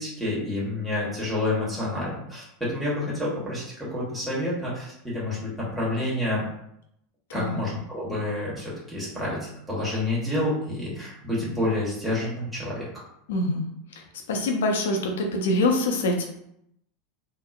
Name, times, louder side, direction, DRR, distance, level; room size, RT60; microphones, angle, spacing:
voice 1, 0.0-6.5 7.3-13.0, left 1 dB, 5° right, -8 dB, 1.1 m, -29 dB
voice 2, 13.3-13.7 13.9-16.3, left 2 dB, 75° left, 2 dB, 0.5 m, -25 dB
2.8 x 2.0 x 2.4 m, 0.75 s
hypercardioid pair, 90°, 0 cm